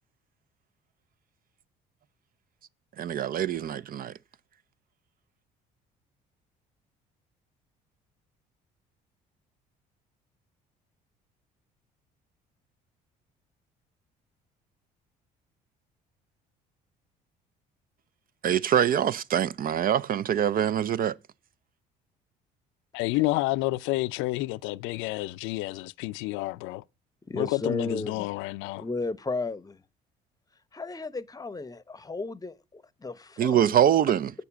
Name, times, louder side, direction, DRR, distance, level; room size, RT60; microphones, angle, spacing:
voice 1, 3.0-4.1 18.4-21.2 33.4-34.3, right 10 dB, 45° right, 0.5 m, -24 dB
voice 2, 22.9-26.8 27.3-28.8, left 19 dB, 70° left, 0.4 m, -29 dB
voice 3, 27.3-28.3 28.8-29.8 30.7-33.7, left 3 dB, 15° left, 0.8 m, -34 dB
8.3 x 6.8 x 7.1 m
hypercardioid pair, 60°, 21 cm